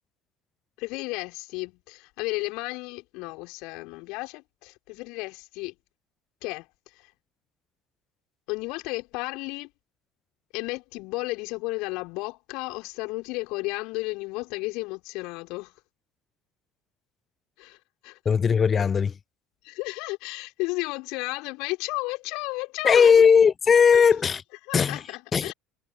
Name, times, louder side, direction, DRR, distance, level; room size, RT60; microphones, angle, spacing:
voice 1, 0.8-5.8 6.4-7.1 8.5-9.7 10.5-15.7 17.6-17.8 18.0-18.2 19.6-23.2 23.9-24.1 24.6-25.5, left 25 dB, 60° left, 4.9 m, -33 dB
voice 2, 18.3-19.1 22.8-24.4 24.7-25.0 25.3-25.5, left 6 dB, 30° left, 0.5 m, -18 dB
figure-of-eight pair, 65°, 0 cm